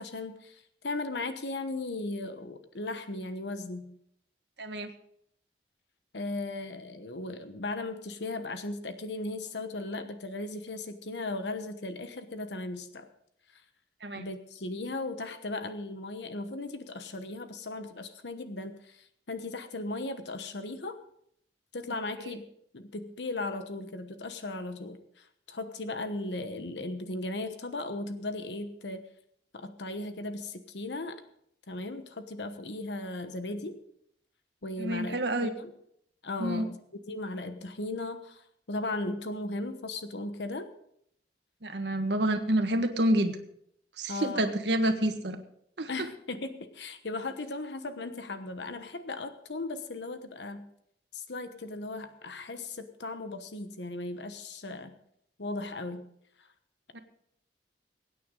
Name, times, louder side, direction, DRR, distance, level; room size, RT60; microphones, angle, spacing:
voice 1, 0.0-4.0 6.1-13.1 13.5-13.6 14.1-21.0 21.7-22.5 22.7-29.0 29.5-31.2 31.7-33.8 34.6-35.7 36.2-36.8 37.1-40.7 44.1-44.5 45.9-50.7 51.1-54.9 55.4-56.1 56.4-56.5, left 2 dB, 80° left, 9 dB, 1.1 m, -37 dB
voice 2, 4.6-4.9 14.0-14.2 34.8-35.5 36.4-36.6 41.6-43.4 44.0-45.4 45.8-45.9 56.9-57.0, right 1 dB, 75° right, 6 dB, 1.6 m, -28 dB
22.5 x 9.3 x 3.9 m, 0.71 s
head